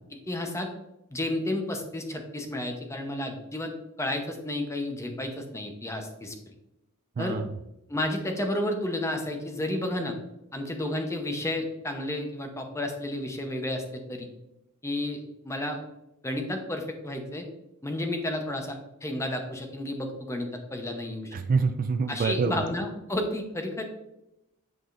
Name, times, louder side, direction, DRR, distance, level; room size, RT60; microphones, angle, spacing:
voice 1, 0.3-0.7 1.1-3.7 4.0-6.3 7.2-7.4 7.9-10.2 10.5-14.3 14.8-15.8 16.2-17.4 17.8-21.4 22.1-23.8, left 1 dB, 15° left, 4 dB, 0.8 m, -31 dB
voice 2, 7.2-7.6 21.3-22.7, right 4 dB, 40° right, 8 dB, 0.3 m, -26 dB
8.0 x 4.9 x 2.5 m, 0.89 s
head